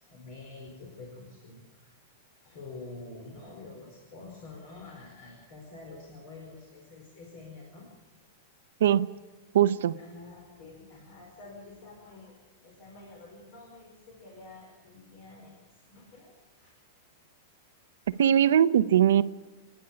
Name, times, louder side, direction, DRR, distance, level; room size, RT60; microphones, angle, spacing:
voice 1, 0.0-2.0 2.4-7.9 10.0-16.7 18.1-18.4, left 3 dB, 40° left, 4.8 m, -48 dB
voice 2, 9.5-10.0 18.2-19.2, right 10 dB, 85° right, 0.9 m, -21 dB
28.0 x 10.0 x 9.7 m
supercardioid pair, 175°, 0 cm